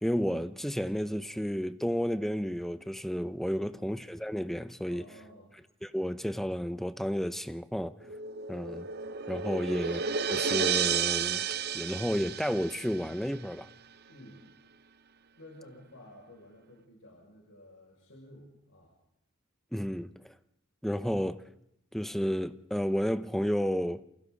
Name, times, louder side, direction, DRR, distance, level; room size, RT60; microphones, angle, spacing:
voice 1, 0.0-5.0 5.8-7.9 8.5-8.9 9.3-10.0 10.3-11.5 11.7-13.7 19.7-20.3 20.8-21.4 21.9-24.0, equal, ahead, 0.7 m, -31 dB
voice 2, 4.9-5.6 14.1-14.5 15.4-19.0, left 1 dB, 80° left, 6.3 m, -53 dB
sound 1, 8.0-13.3, right 6 dB, 50° right, 0.8 m, -32 dB
28.5 x 27.5 x 4.0 m
head